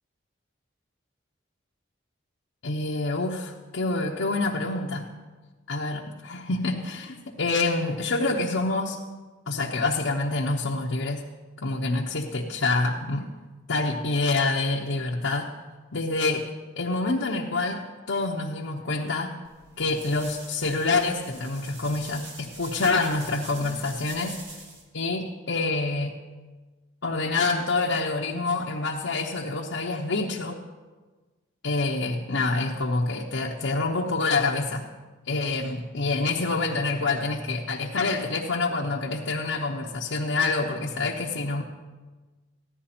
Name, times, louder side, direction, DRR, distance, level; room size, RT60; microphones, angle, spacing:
voice 1, 2.6-5.1 5.7-9.0 9.5-11.2 11.6-13.3 13.7-15.5 15.9-16.4 16.8-19.3 19.8-24.4 24.9-26.2 27.0-30.6 31.6-34.9 35.3-41.6, left 3 dB, 80° left, -2 dB, 0.9 m, -27 dB
sound 1, 19.4-24.8, right 3 dB, 70° right, 2.2 m, -44 dB
14.5 x 11.5 x 4.3 m, 1.3 s
head